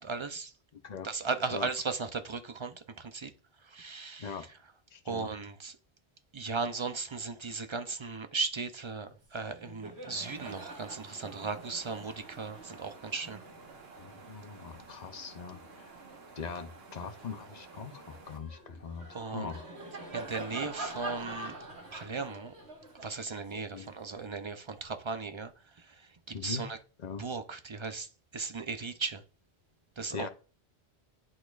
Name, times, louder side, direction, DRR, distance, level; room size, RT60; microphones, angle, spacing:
voice 1, 0.0-0.5 1.0-3.3 3.6-4.3 5.1-5.8 6.3-13.4 19.1-19.5 20.1-21.5 21.9-22.5 23.0-25.5 25.8-26.8 27.2-28.1 28.3-29.2 30.0-30.3, right 4 dB, 35° right, 0.5 m, -37 dB
voice 2, 0.7-1.1 1.5-1.7 4.2-4.5 4.9-5.3 14.0-16.0 16.4-19.7 23.7-23.9 26.3-26.6 27.0-27.2 30.1-30.3, left 6 dB, 45° left, 0.8 m, -41 dB
Laughter, 9.1-9.3 9.5-16.2 16.8-24.9, right 2 dB, 80° right, 1.9 m, -46 dB
sound 1, 10.1-18.4, right 4 dB, 65° right, 1.4 m, -52 dB
11.0 x 4.2 x 2.4 m
omnidirectional pair, 1.1 m